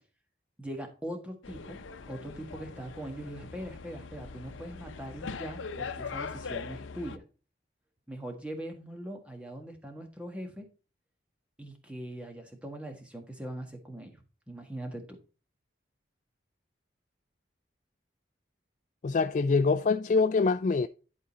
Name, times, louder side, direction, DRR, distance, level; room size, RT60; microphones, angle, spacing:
voice 1, 0.6-1.8 2.1-7.2 8.1-10.7 11.6-15.0, right 1 dB, 5° right, 1.5 m, -41 dB
sound 1, 1.4-7.2, left 5 dB, 85° left, 0.7 m, -41 dB
voice 2, 19.0-20.9, left 4 dB, 40° left, 0.3 m, -25 dB
11.0 x 3.9 x 4.1 m
head